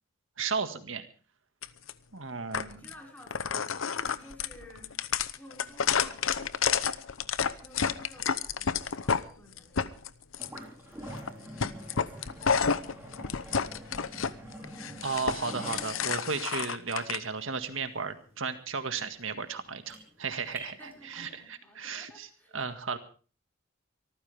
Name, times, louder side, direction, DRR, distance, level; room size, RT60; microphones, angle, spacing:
voice 1, 0.4-1.1 2.1-2.8 15.0-22.3 22.5-23.0, right 5 dB, 75° right, 8 dB, 1.9 m, -34 dB
sound 1, 1.6-1.9 2.5-2.9 3.3-9.2 9.6-10.6 11.1-11.3 11.6-14.3 14.6-17.2, left 6 dB, 90° left, 0.8 m, -30 dB
voice 2, 2.4-5.0 5.4-6.3 7.6-10.1 10.4-12.9 13.6-14.5 20.8-22.6, equal, 10° left, 0 dB, 5.5 m, -54 dB
sound 2, 10.3-21.4, right 1 dB, 10° right, 4.3 m, -46 dB
24.5 x 14.5 x 3.5 m, 0.38 s
head